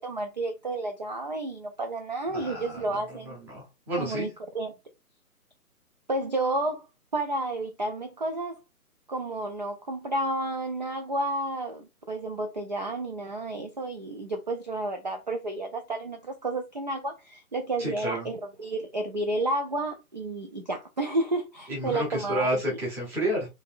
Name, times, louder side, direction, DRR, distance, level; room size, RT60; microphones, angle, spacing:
voice 1, 0.0-3.4 4.0-4.3 4.5-4.7 6.1-6.9 7.1-8.6 9.1-22.8, right 2 dB, 35° right, 0.4 m, -31 dB
voice 2, 2.3-4.3 17.8-18.3 21.7-23.5, equal, 5° right, 0.8 m, -31 dB
4.0 x 3.3 x 2.4 m
figure-of-eight pair, 140°, 44 cm